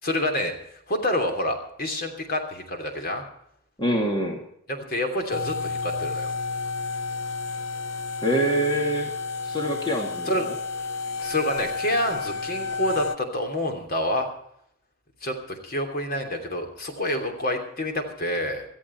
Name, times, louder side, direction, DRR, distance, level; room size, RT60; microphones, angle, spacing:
voice 1, 0.0-0.5 0.9-3.2 4.7-6.3 10.3-10.4 11.2-14.3 15.2-18.6, left 1 dB, 45° left, 4 dB, 3.0 m, -28 dB
voice 2, 3.8-4.4 8.2-9.1 9.4-10.5, right 1 dB, 25° left, 1 dB, 2.3 m, -25 dB
sound 1, 5.3-13.2, left 4 dB, 75° left, 0.8 m, -31 dB
18.5 x 14.0 x 4.4 m, 0.71 s
head